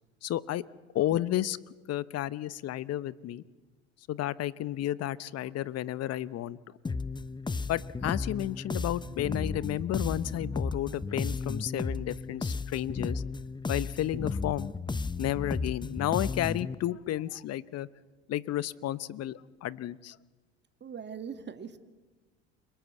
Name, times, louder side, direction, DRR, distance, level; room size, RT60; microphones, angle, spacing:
voice 1, 0.2-0.6 0.9-1.6 1.9-3.4 4.1-6.6 7.7-13.2 13.7-14.7 15.2-17.9 18.3-20.2, left 13 dB, 45° left, 18 dB, 0.9 m, -32 dB
sound 1, 6.8-16.7, left 4 dB, 15° left, 0.8 m, -34 dB
voice 2, 20.8-21.9, right 7 dB, 30° right, 9 dB, 2.0 m, -41 dB
29.0 x 19.5 x 8.3 m, 1.3 s
hypercardioid pair, 75°, 34 cm